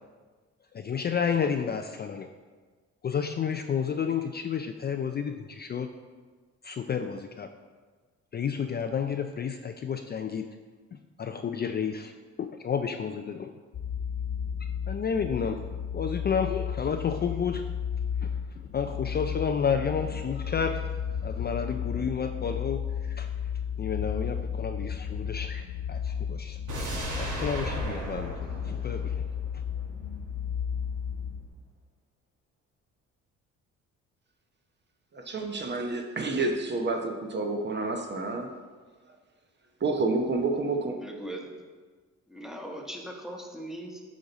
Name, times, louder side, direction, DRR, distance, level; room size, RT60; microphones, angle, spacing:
voice 1, 0.7-2.3 3.0-5.9 6.6-7.5 8.3-10.5 10.9-12.1 12.4-13.5 14.9-15.6 15.9-17.6 18.2-20.9 21.2-23.3 23.8-26.6 27.2-28.3 28.6-29.2, left 7 dB, 35° left, 6 dB, 0.4 m, -31 dB
sound 1, 13.7-31.5, left 7 dB, 60° left, 1.3 m, -33 dB
sound 2, 26.7-29.8 30.1-30.2, right 1 dB, 75° right, 2.2 m, -35 dB
voice 2, 35.1-38.5 39.8-41.0, right 3 dB, 35° right, 3 dB, 0.9 m, -29 dB
voice 3, 40.9-41.5 42.3-44.0, right 1 dB, ahead, 1 dB, 1.2 m, -39 dB
8.5 x 5.2 x 4.0 m, 1.4 s
cardioid pair, 90°, 30 cm